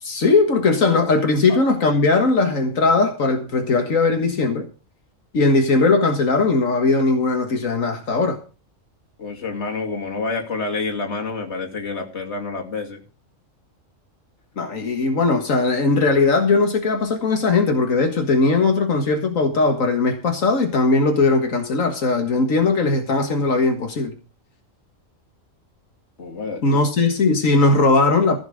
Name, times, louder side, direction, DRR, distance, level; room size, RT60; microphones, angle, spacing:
voice 1, 0.0-4.7 5.3-8.4 14.6-24.1 26.6-28.4, left 3 dB, 85° left, 2.0 m, -19 dB
voice 2, 9.2-13.0 26.2-26.8, left 3 dB, 60° left, 2.7 m, -28 dB
15.0 x 6.5 x 6.5 m
omnidirectional pair, 1.3 m